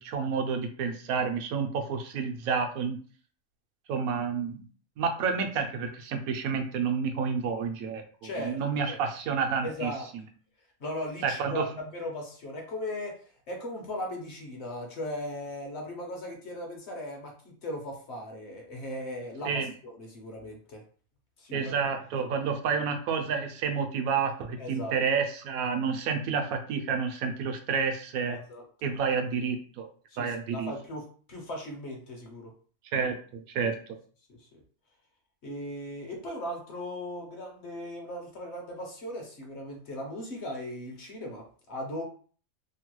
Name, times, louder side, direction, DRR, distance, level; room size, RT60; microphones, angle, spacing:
voice 1, 0.0-3.0 3.9-4.6 5.0-9.9 11.2-11.6 19.4-19.7 21.5-28.4 28.8-29.9 30.2-30.7 32.9-33.8, right 6 dB, 85° right, 5 dB, 1.0 m, -29 dB
voice 2, 8.2-8.6 8.9-9.0 9.6-10.1 10.8-13.2 13.5-20.8 21.4-21.7 24.6-24.9 28.3-28.6 30.1-32.5 34.3-34.6 35.4-42.0, left 1 dB, 60° left, 1 dB, 0.9 m, -38 dB
3.0 x 2.2 x 3.0 m, 0.43 s
omnidirectional pair, 1.5 m